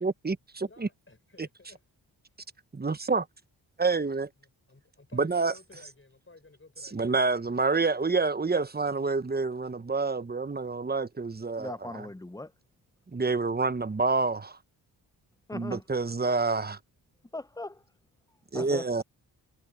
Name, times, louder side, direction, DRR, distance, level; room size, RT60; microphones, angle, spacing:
voice 1, 0.0-0.9 1.4-1.5 2.7-3.3 3.8-4.3 5.1-5.5 6.9-12.0 13.1-14.6 15.5-16.8 18.5-19.0, right 4 dB, 20° right, 1.1 m, -28 dB
voice 2, 0.6-1.8 4.4-7.2, left 3 dB, 30° left, 6.1 m, -55 dB
voice 3, 11.6-12.5 15.5-15.8 17.3-17.8 18.5-19.0, left 2 dB, 10° left, 0.7 m, -39 dB
supercardioid pair, 50°, 45 cm